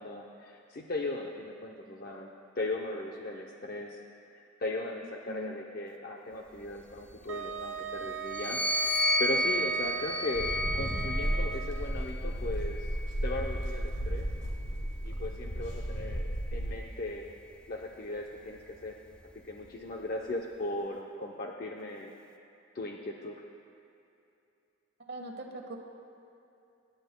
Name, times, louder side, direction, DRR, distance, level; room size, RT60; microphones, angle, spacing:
voice 1, 0.0-2.3 2.6-4.0 4.3-12.9 13.2-14.3 15.0-17.3 17.7-19.0 19.4-22.1 22.7-23.4, left 2 dB, 50° left, 0 dB, 0.6 m, -38 dB
Wind instrument woodwind instrument, 7.3-12.0, right 6 dB, 75° right, 0.5 m, -39 dB
sound 1, 8.3-11.9 12.7-14.3, left 1 dB, 5° left, 0.4 m, -32 dB
sound 2, 10.3-16.8, equal, 75° left, 2.5 m, -34 dB
voice 2, 25.0-25.8, right 2 dB, 55° right, 2 dB, 1.2 m, -41 dB
24.5 x 11.0 x 2.2 m, 2.7 s
head